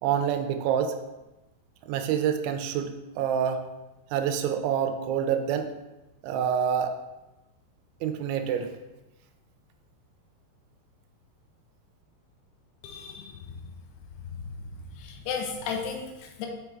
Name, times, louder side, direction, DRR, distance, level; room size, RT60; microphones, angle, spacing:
voice 1, 0.0-1.0 1.8-3.6 4.1-5.7 6.2-7.0 8.0-8.7, right 8 dB, 85° right, 6 dB, 2.9 m, -27 dB
voice 2, 12.8-13.5 14.4-14.5 15.0-16.5, left 6 dB, 85° left, 2 dB, 3.2 m, -34 dB
6.2 x 5.8 x 3.4 m, 1.0 s
omnidirectional pair, 5.2 m